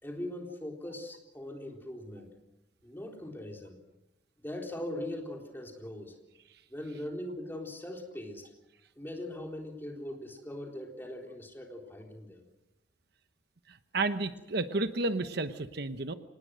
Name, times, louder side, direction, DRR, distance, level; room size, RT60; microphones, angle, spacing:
voice 1, 0.0-2.3 2.8-3.8 4.4-6.1 6.7-8.4 9.0-12.5, left 1 dB, 10° left, 1 dB, 4.0 m, -40 dB
voice 2, 13.9-16.1, right 3 dB, 60° right, 10 dB, 1.0 m, -31 dB
26.0 x 19.5 x 6.4 m, 0.95 s
head